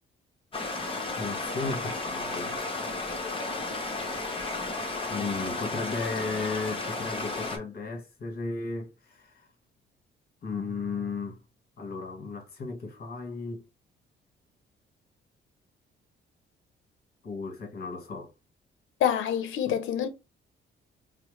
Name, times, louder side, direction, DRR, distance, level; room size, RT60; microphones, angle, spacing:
Stream, 0.5-7.6, left 3 dB, 25° left, 1.1 m, -33 dB
voice 1, 1.2-2.6 5.1-9.5 10.4-11.4 11.8-13.6 17.2-18.3 19.7-19.8, left 4 dB, 50° left, 1.3 m, -35 dB
voice 2, 19.0-20.1, left 9 dB, 80° left, 0.7 m, -26 dB
4.4 x 2.1 x 3.2 m
cardioid pair, 90°, 20 cm